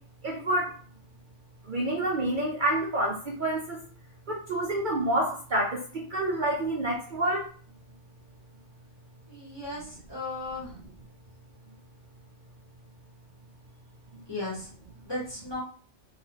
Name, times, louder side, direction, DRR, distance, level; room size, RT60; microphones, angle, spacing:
voice 1, 0.2-0.7 1.7-3.8 4.3-7.4, right 1 dB, 50° right, -2 dB, 0.7 m, -28 dB
voice 2, 9.3-10.8 14.3-14.7 15.1-15.6, left 2 dB, 20° left, -5 dB, 1.1 m, -36 dB
2.9 x 2.9 x 2.9 m, 0.42 s
omnidirectional pair, 1.2 m